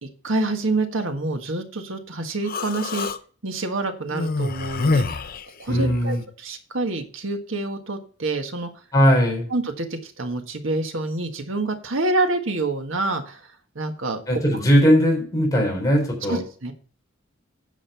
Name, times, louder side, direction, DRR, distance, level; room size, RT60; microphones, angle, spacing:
voice 1, 0.0-3.1 3.4-5.2 5.6-8.7 9.5-13.4 13.8-14.4 16.3-16.7, right 2 dB, 75° right, 6 dB, 1.7 m, -27 dB
Human voice, 2.4-3.2 4.1-6.1, left 3 dB, 50° left, 0.7 m, -26 dB
voice 2, 5.7-6.2 8.9-9.5 14.3-16.4, equal, 20° left, -2 dB, 3.8 m, -19 dB
9.9 x 6.5 x 5.6 m, 0.42 s
head